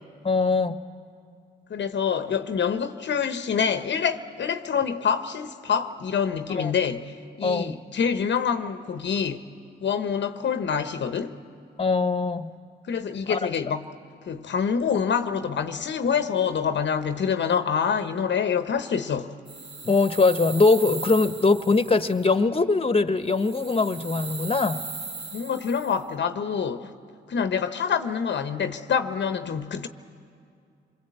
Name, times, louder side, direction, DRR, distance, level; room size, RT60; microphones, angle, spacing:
voice 1, 0.2-0.8 6.5-6.7 7.4-7.8 11.8-12.5 13.3-13.4 19.8-24.8, left 3 dB, 30° left, 1.3 m, -22 dB
voice 2, 1.7-9.4 9.8-11.4 12.9-13.9 14.3-19.3 25.3-26.9 27.3-29.9, left 7 dB, 65° left, 1.0 m, -26 dB
sound 1, 19.5-22.3 23.3-26.0, right 4 dB, 60° right, 1.8 m, -38 dB
27.5 x 22.0 x 8.4 m
supercardioid pair, 45°, 20 cm